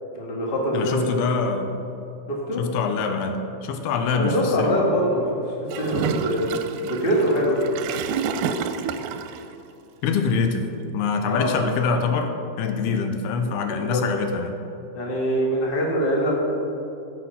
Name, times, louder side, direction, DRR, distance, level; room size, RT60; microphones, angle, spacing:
voice 1, 0.1-1.3 2.3-2.6 4.1-5.3 5.8-6.4 6.9-7.6 11.3-11.6 13.7-14.0 14.9-16.6, equal, 35° left, -3 dB, 0.8 m, -23 dB
voice 2, 0.7-1.7 2.6-4.8 10.0-10.6 10.9-14.5, left 5 dB, 80° left, 6 dB, 2.8 m, -24 dB
Gurgling / Toilet flush, 5.7-9.4, right 6 dB, 80° right, 2.3 m, -28 dB
15.0 x 6.5 x 5.7 m, 2.8 s
omnidirectional pair, 4.6 m